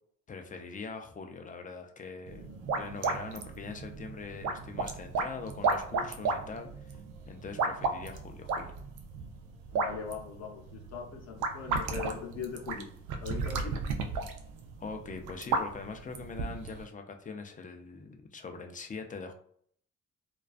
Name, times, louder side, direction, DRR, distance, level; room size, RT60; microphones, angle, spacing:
voice 1, 0.3-7.0 7.3-8.8 14.8-19.3, left 4 dB, 25° left, 5 dB, 0.4 m, -42 dB
sound 1, 2.3-16.8, right 4 dB, 85° right, 0.5 m, -34 dB
voice 2, 9.8-12.9 13.2-13.8, left 6 dB, 60° left, 2 dB, 0.7 m, -40 dB
2.3 x 2.2 x 2.4 m, 0.62 s
cardioid pair, 90°, 30 cm